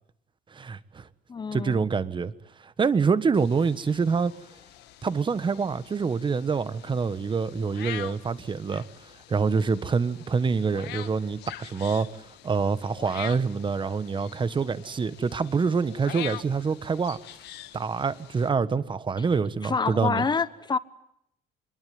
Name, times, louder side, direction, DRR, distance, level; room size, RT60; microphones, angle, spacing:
voice 1, 0.5-1.0 1.5-2.3 2.6-4.3 5.0-8.8 9.3-12.1 12.4-17.2 17.7-20.2, right 5 dB, 30° right, 1.4 m, -26 dB
voice 2, 1.3-1.9 19.2-19.3 19.6-20.8, left 5 dB, 25° left, 1.3 m, -27 dB
sound 1, 3.3-18.5, left 14 dB, 80° left, 1.7 m, -44 dB
26.0 x 22.0 x 9.5 m
cardioid pair, 110°, 17 cm